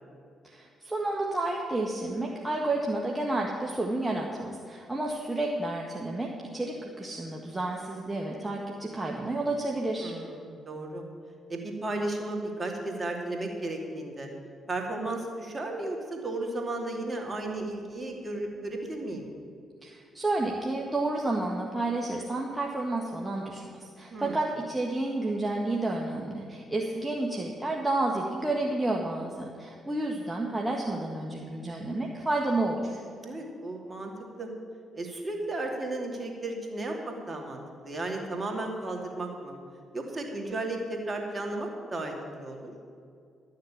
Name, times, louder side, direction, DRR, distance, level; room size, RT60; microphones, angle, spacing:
voice 1, 0.4-10.1 19.8-33.0, right 2 dB, 15° right, -1 dB, 1.6 m, -30 dB
voice 2, 10.0-11.0 11.5-14.3 14.7-19.3 24.1-24.4 33.2-34.1 34.4-34.5 34.9-39.6 39.9-42.7, right 2 dB, 35° right, 1 dB, 2.7 m, -34 dB
12.0 x 6.7 x 8.5 m, 2.4 s
hypercardioid pair, 45°, 0 cm